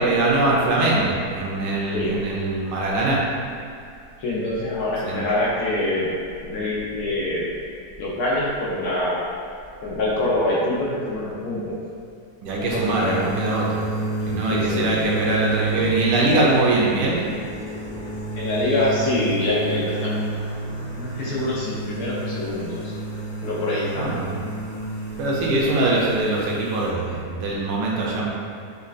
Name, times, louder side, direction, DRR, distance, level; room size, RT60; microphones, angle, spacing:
voice 1, 0.0-3.2 5.0-5.2 12.4-13.9 14.2-17.2 24.0-24.4 25.2-28.3, right 2 dB, 75° right, -4 dB, 1.1 m, -22 dB
voice 2, 4.2-6.1 6.4-7.5 8.0-9.2 9.8-11.8 12.6-13.3 14.5-14.9 18.3-20.3 20.9-22.9 23.4-24.2, left 2 dB, 70° left, -6 dB, 1.0 m, -25 dB
sound 1, 12.6-26.9, right 2 dB, 50° left, 1.3 m, -30 dB
5.2 x 2.2 x 2.4 m, 2.5 s
omnidirectional pair, 2.0 m